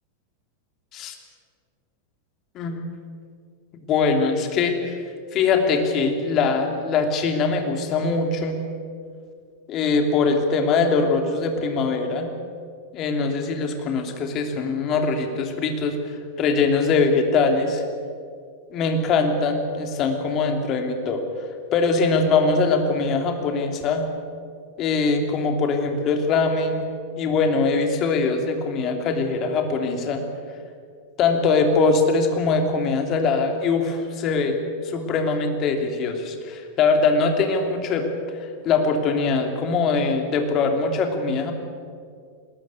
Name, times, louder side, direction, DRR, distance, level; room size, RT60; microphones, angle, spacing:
voice 1, 3.7-5.0 5.3-8.6 9.7-12.3 12.9-17.8 18.7-21.2 21.7-24.0 24.8-26.8 27.2-30.2 31.2-41.5, left 4 dB, 35° left, 5 dB, 3.0 m, -22 dB
21.0 x 19.0 x 8.5 m, 2.2 s
figure-of-eight pair, 90°, 0 cm